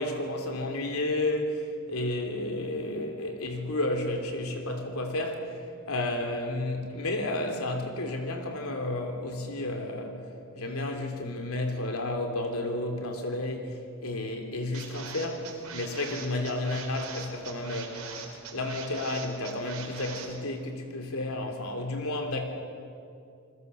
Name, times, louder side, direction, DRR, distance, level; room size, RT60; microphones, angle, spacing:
voice 1, 0.0-5.6 5.9-10.2 10.5-18.0 18.5-22.4, left 2 dB, 75° left, 3.3 m, -32 dB
sound 1, 14.7-20.3, right 6 dB, 80° right, 4.1 m, -41 dB
28.5 x 20.5 x 6.9 m
head